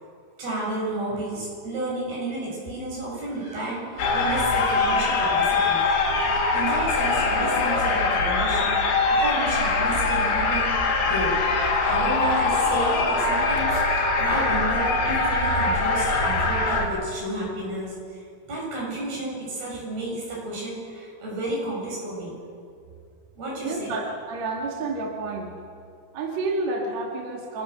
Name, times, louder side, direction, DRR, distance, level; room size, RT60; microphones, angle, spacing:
voice 1, 0.4-5.8 6.2-10.7 11.0-18.2 18.5-22.3 23.4-24.0, right 1 dB, 70° right, -4 dB, 9.2 m, -31 dB
sound 1, 4.0-16.9, left 3 dB, 85° left, 4.6 m, -22 dB
voice 2, 23.6-25.5 26.1-27.6, right 3 dB, 50° right, 0 dB, 2.8 m, -30 dB
28.0 x 16.0 x 7.0 m, 2.3 s
omnidirectional pair, 4.6 m